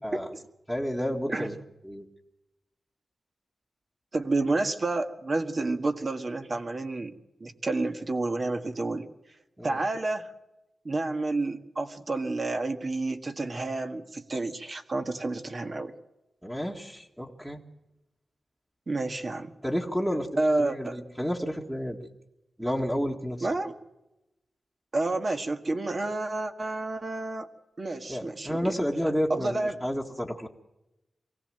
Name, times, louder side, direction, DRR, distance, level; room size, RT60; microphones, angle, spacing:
voice 1, 0.7-1.6 1.8-2.1 9.6-9.8 16.4-17.6 19.6-22.0 22.6-23.5 28.1-30.5, equal, 5° right, 0 dB, 1.9 m, -31 dB
voice 2, 4.1-9.1 9.6-10.3 10.8-15.9 18.9-19.6 20.4-21.0 23.4-23.8 24.9-27.5 27.8-28.8 29.3-29.8, right 2 dB, 40° right, 6 dB, 1.7 m, -30 dB
24.0 x 17.0 x 7.7 m, 0.94 s
wide cardioid pair, 120°, 0 cm